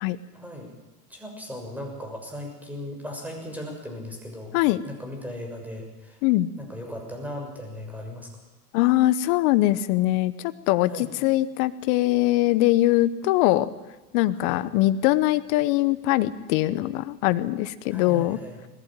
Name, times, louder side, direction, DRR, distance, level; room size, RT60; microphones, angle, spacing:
voice 1, 0.3-0.7 1.1-4.5 4.8-6.2 6.6-8.3 10.9-11.1 14.3-14.6 17.9-18.6, left 1 dB, 5° right, 2 dB, 6.7 m, -37 dB
voice 2, 8.7-10.3 10.7-13.7 14.1-18.4, left 16 dB, 60° left, 14 dB, 1.2 m, -22 dB
20.0 x 15.5 x 9.0 m, 1.1 s
hypercardioid pair, 100°, 47 cm